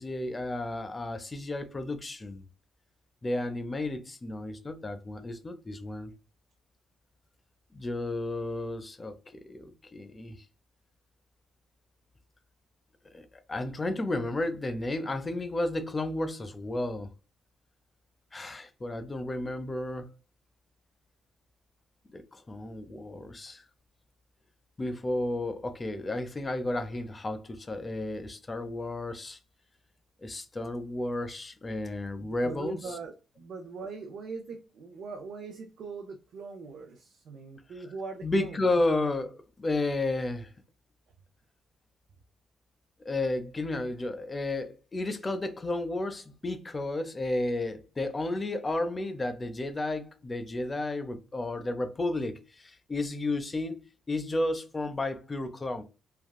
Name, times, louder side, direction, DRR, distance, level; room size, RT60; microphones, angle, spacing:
voice 1, 0.0-2.5 3.2-6.1 7.7-10.4 13.1-17.1 18.3-20.1 22.1-23.6 24.8-29.4 30.2-32.8 38.2-40.5 43.0-55.8, left 2 dB, 25° left, 0.6 m, -32 dB
voice 2, 32.2-38.7, right 4 dB, 70° right, 0.5 m, -41 dB
3.4 x 2.3 x 2.2 m
cardioid pair, 90°, 0 cm